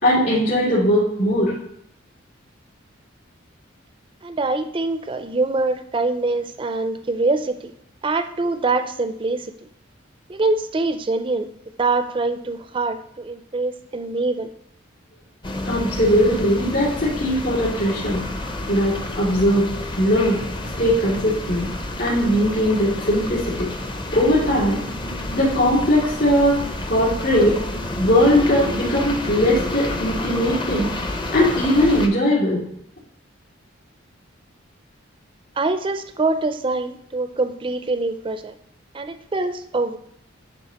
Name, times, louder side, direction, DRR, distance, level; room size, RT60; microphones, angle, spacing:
voice 1, 0.0-1.5 15.6-18.2 18.7-19.7 19.9-20.4 20.8-21.7 22.0-23.7 24.1-24.8 25.3-26.6 26.9-27.6 28.0-30.9 31.3-32.6, equal, 50° left, -10 dB, 2.5 m, -19 dB
voice 2, 4.2-7.7 8.0-9.5 10.3-11.5 11.8-14.5 35.6-38.6 38.9-40.0, right 3 dB, 25° right, 9 dB, 0.4 m, -24 dB
sound 1, 15.4-32.1, left 1 dB, 25° left, 0.6 m, -29 dB
10.5 x 3.7 x 2.9 m, 0.70 s
head